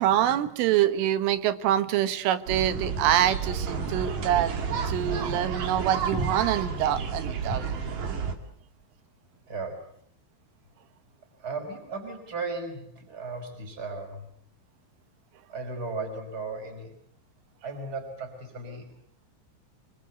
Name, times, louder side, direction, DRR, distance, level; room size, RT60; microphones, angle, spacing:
voice 1, 0.0-7.7, right 11 dB, 85° right, 12 dB, 3.9 m, -25 dB
sound 1, 2.5-8.3, right 5 dB, 45° right, 2.9 m, -30 dB
voice 2, 9.5-9.9 11.4-14.3 15.5-16.9 17.6-18.9, right 3 dB, 20° right, 5 dB, 5.2 m, -36 dB
25.5 x 25.0 x 8.0 m, 0.66 s
omnidirectional pair, 5.6 m